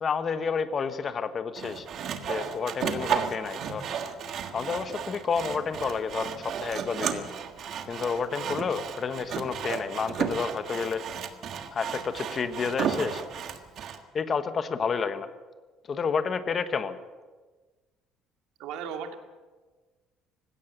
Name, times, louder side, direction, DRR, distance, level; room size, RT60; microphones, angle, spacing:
voice 1, 0.0-1.9 2.3-3.9 4.5-7.3 7.9-11.0 11.7-13.2 14.1-15.3 15.9-17.0, left 5 dB, 30° left, 10 dB, 1.2 m, -30 dB
Sawing, 1.6-14.0, right 7 dB, 45° right, 1.6 m, -33 dB
voice 2, 3.0-3.3 18.6-19.1, right 7 dB, 80° right, 5 dB, 2.4 m, -37 dB
19.5 x 17.0 x 8.0 m, 1.3 s
cardioid pair, 170°, 0 cm